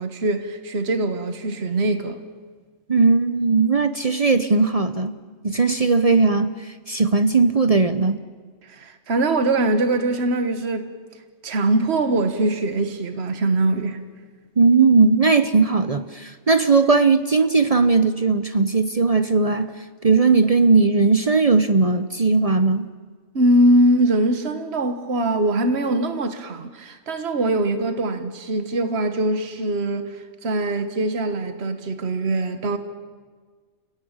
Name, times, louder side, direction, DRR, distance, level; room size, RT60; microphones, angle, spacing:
voice 1, 0.0-2.2 8.6-10.9 11.4-14.0 23.3-30.2 30.4-32.8, right 1 dB, 55° right, 1.7 m, -22 dB
voice 2, 2.9-5.2 5.4-6.5 6.9-8.2 14.6-19.7 20.0-22.9, right 4 dB, 35° right, 0.8 m, -18 dB
29.5 x 17.0 x 8.9 m
omnidirectional pair, 1.3 m